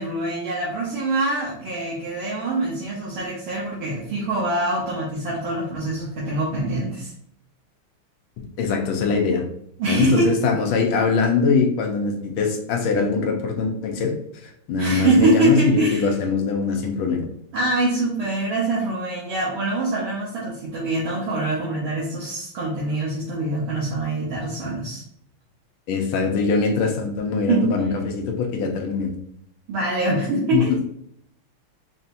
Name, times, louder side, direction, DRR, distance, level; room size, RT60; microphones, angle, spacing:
voice 1, 0.0-7.1 9.8-10.4 14.8-16.1 17.5-25.0 27.5-27.9 29.7-30.8, right 2 dB, 75° right, -6 dB, 1.7 m, -24 dB
voice 2, 8.6-9.4 9.9-14.1 14.7-17.3 25.9-29.1 30.5-30.6, left 4 dB, 80° left, 2 dB, 1.6 m, -22 dB
5.4 x 2.8 x 2.5 m, 0.69 s
omnidirectional pair, 2.4 m